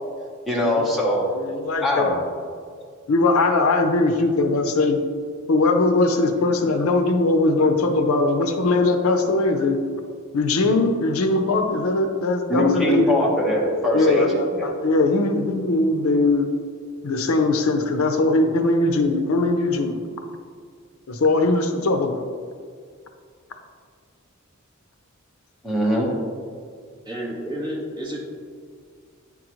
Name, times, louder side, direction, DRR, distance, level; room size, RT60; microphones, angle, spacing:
voice 1, 0.5-1.3 1.8-2.2 12.5-14.7 25.6-26.1, left 1 dB, ahead, -4 dB, 1.1 m, -22 dB
voice 2, 1.3-2.1 3.1-5.0 5.5-9.8 10.3-13.3 13.9-14.3 14.6-16.5 17.0-20.1 21.1-22.3, left 2 dB, 70° left, 6 dB, 0.5 m, -20 dB
voice 3, 27.0-28.2, equal, 20° right, -5 dB, 1.4 m, -30 dB
9.4 x 3.7 x 3.0 m, 2.1 s
head